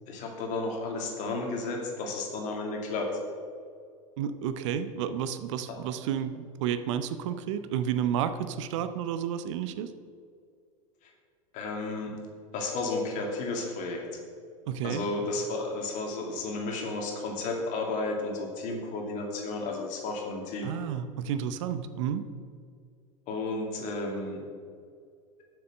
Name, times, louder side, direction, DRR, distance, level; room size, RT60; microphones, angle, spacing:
voice 1, 0.1-3.1 5.7-5.8 11.5-12.1 12.5-14.2 14.8-20.7 23.3-24.4, left 3 dB, 45° left, 1 dB, 2.3 m, -33 dB
voice 2, 4.2-9.9 14.7-15.0 20.6-22.2, right 9 dB, 60° right, 11 dB, 0.7 m, -31 dB
7.8 x 7.0 x 6.6 m, 2.2 s
hypercardioid pair, 85°, 17 cm